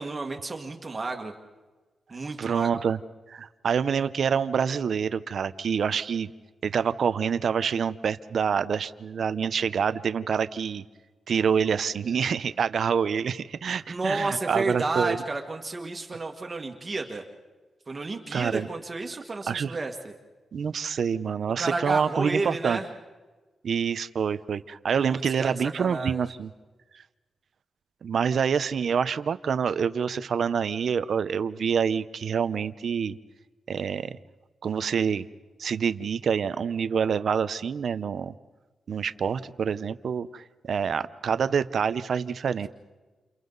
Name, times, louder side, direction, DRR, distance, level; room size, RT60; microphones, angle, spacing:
voice 1, 0.0-1.3 2.1-2.7 13.7-17.2 17.9-20.1 21.6-22.9 25.0-26.2, right 3 dB, 30° right, 3 dB, 1.8 m, -31 dB
voice 2, 2.4-3.0 3.3-6.3 6.6-10.8 11.3-15.2 18.3-18.7 19.5-19.8 20.5-22.8 23.6-26.5 28.0-33.2 33.7-34.2 34.6-35.3 35.6-38.3 38.9-42.7, right 7 dB, 60° right, 13 dB, 0.8 m, -27 dB
29.5 x 29.0 x 4.0 m, 1.3 s
wide cardioid pair, 130°, 0 cm